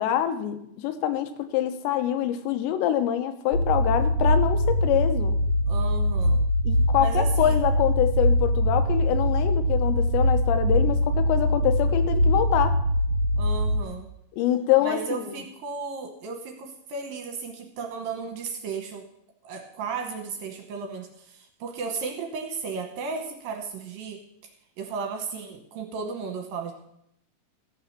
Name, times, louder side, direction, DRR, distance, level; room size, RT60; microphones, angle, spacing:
voice 1, 0.0-5.4 6.6-12.8 14.3-15.4, left 11 dB, 85° left, 8 dB, 3.1 m, -25 dB
sound 1, 3.5-13.8, equal, 45° left, 2.0 m, -22 dB
voice 2, 5.7-6.4 7.0-7.6 13.4-14.1 14.8-19.1 19.4-24.2 24.8-26.7, right 5 dB, 70° right, 3 dB, 2.4 m, -34 dB
14.0 x 7.5 x 5.9 m, 0.76 s
omnidirectional pair, 5.0 m